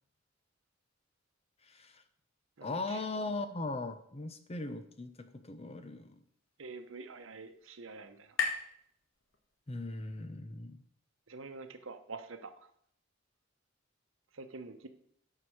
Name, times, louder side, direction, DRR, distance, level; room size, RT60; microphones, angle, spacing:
voice 1, 1.6-2.0 2.6-6.2 9.7-10.8, left 2 dB, 30° left, 10 dB, 0.7 m, -39 dB
voice 2, 2.6-3.0 6.6-8.4 11.3-12.5 14.3-14.9, right 3 dB, 85° right, 9 dB, 0.9 m, -46 dB
sound 1, 6.1-9.8, left 5 dB, 85° left, 1.4 m, -41 dB
9.3 x 4.8 x 6.3 m, 0.68 s
head